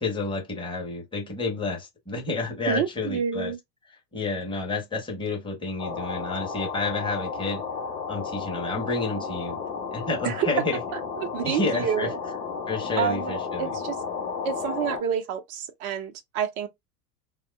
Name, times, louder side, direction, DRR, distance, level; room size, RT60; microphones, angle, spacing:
voice 1, 0.0-3.5 4.1-7.6 8.1-9.6 9.9-10.8 11.4-12.1 12.7-13.7, left 3 dB, 10° left, 1.2 m, -30 dB
voice 2, 2.7-3.6 10.2-10.5 10.9-12.2 13.0-14.0 14.4-16.7, right 8 dB, 25° right, 0.4 m, -29 dB
sound 1, 5.8-15.0, left 5 dB, 40° left, 1.1 m, -33 dB
3.5 x 2.1 x 2.3 m
figure-of-eight pair, 75°, 49 cm